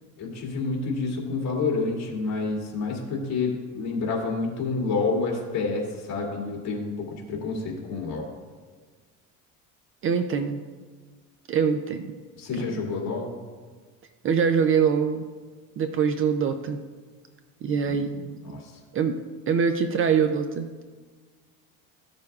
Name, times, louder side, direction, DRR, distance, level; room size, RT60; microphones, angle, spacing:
voice 1, 0.2-8.3 12.4-13.3 17.8-18.0 18.4-18.7, left 4 dB, 45° left, -2 dB, 2.4 m, -29 dB
voice 2, 10.0-10.6 11.5-12.1 14.2-15.2 15.8-16.8 17.6-18.4 18.9-19.2 19.5-20.7, right 6 dB, 35° right, 8 dB, 0.5 m, -24 dB
14.5 x 6.8 x 2.4 m, 1.5 s
cardioid pair, 135°, 38 cm